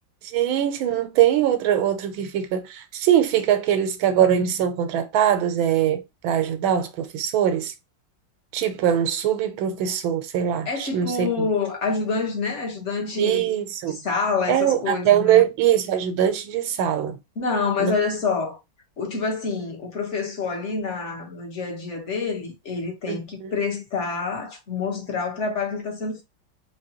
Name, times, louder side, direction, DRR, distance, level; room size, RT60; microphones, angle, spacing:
voice 1, 0.2-7.7 8.5-11.5 13.2-14.0 14.5-17.2 17.8-17.9 23.1-23.5, right 10 dB, 85° right, 1.5 m, -22 dB
voice 2, 10.6-13.5 13.9-15.4 17.4-18.6 19.0-26.2, left 4 dB, 40° left, 1.3 m, -27 dB
4.1 x 3.3 x 2.8 m
omnidirectional pair, 2.2 m